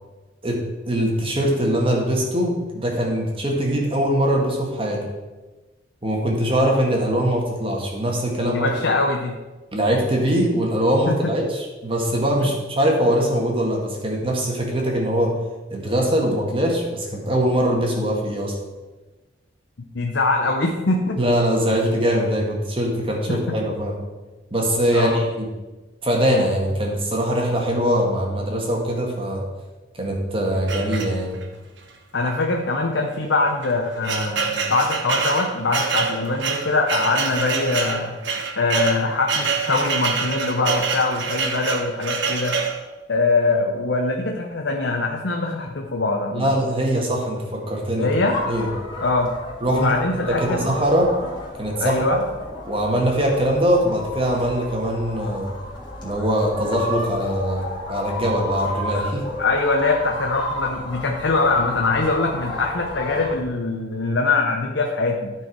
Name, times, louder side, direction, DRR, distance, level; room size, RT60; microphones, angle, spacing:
voice 1, 0.8-5.1 6.0-8.9 9.7-15.3 15.7-18.5 21.2-24.0 24.5-25.5 26.0-29.4 30.0-31.4 46.3-48.1 48.5-48.7 49.6-50.0 50.3-51.1 51.6-52.2 52.7-55.5 56.0-59.2, equal, 30° right, 0 dB, 1.6 m, -22 dB
voice 2, 8.4-9.4 11.0-11.3 19.9-21.2 23.3-23.6 24.9-25.2 32.1-38.2 38.6-42.6 43.1-46.5 48.0-48.4 49.0-49.3 49.7-50.7 51.8-52.2 59.4-65.3, left 3 dB, 65° left, 1 dB, 0.8 m, -22 dB
sound 1, 30.7-31.5 32.3-32.4 32.7-32.8 33.5-42.8, right 5 dB, 65° right, 1.1 m, -26 dB
sound 2, 48.2-63.4, left 1 dB, 25° left, 2.3 m, -32 dB
12.5 x 4.7 x 4.6 m, 1.2 s
head